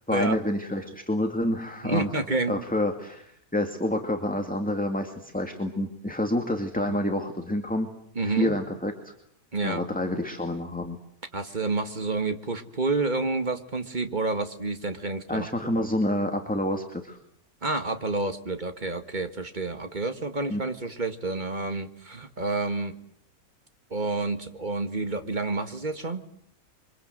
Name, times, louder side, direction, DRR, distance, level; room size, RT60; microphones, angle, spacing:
voice 1, 0.1-2.1 2.5-7.9 8.2-9.1 9.6-11.0 15.3-17.2 20.5-20.6, left 1 dB, 5° left, 4 dB, 2.2 m, -28 dB
voice 2, 1.8-2.6 8.2-8.6 9.5-9.9 11.3-15.5 15.8-15.9 17.6-23.0 23.9-26.2, right 3 dB, 30° right, 8 dB, 2.1 m, -29 dB
28.0 x 24.5 x 7.9 m, 0.72 s
omnidirectional pair, 1.5 m